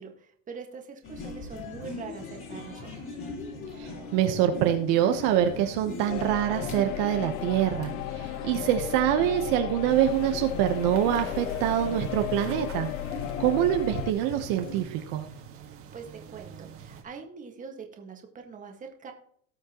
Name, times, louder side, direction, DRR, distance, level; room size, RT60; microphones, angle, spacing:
voice 1, 0.0-3.2 15.9-19.1, right 5 dB, 20° right, 3 dB, 1.7 m, -43 dB
sound 1, 1.0-14.8, left 3 dB, 30° left, 3.9 m, -41 dB
voice 2, 3.8-12.9 13.4-15.2, right 11 dB, 55° right, 6 dB, 1.1 m, -25 dB
sound 2, 6.1-14.1, left 15 dB, 85° left, 0.6 m, -35 dB
sound 3, 9.9-17.0, right 7 dB, 35° right, 1.8 m, -44 dB
18.5 x 6.3 x 3.0 m, 0.63 s
supercardioid pair, 150°, 38 cm